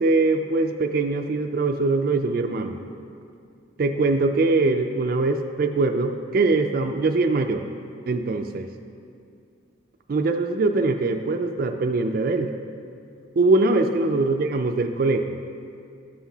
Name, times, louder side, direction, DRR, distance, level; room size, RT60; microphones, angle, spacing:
voice 1, 0.0-2.8 3.8-7.6 8.1-8.7 10.1-12.5 13.4-15.4, right 3 dB, 45° right, 5 dB, 0.3 m, -22 dB
13.5 x 5.9 x 2.8 m, 2.4 s
head